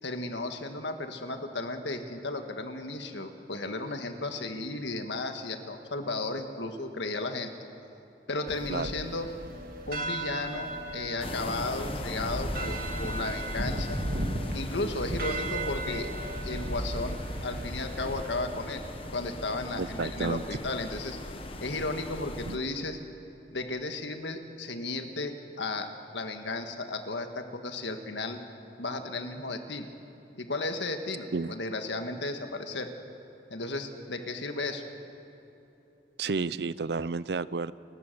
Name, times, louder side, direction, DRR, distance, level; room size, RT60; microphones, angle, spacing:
voice 1, 0.0-7.5 8.3-9.3 9.9-14.0 14.5-16.1 16.4-18.8 19.1-21.2 21.6-23.0 23.5-28.4 28.8-29.8 30.4-32.9 33.5-34.8, left 2 dB, 90° left, 6 dB, 1.7 m, -34 dB
sound 1, 8.5-18.4, right 1 dB, 50° right, 1.8 m, -35 dB
sound 2, 11.2-22.6, left 1 dB, 30° left, 1.2 m, -39 dB
voice 2, 19.8-20.4 22.5-22.6 31.3-31.5 36.2-37.7, right 4 dB, 65° right, 17 dB, 0.5 m, -31 dB
29.5 x 15.5 x 6.8 m, 3.0 s
head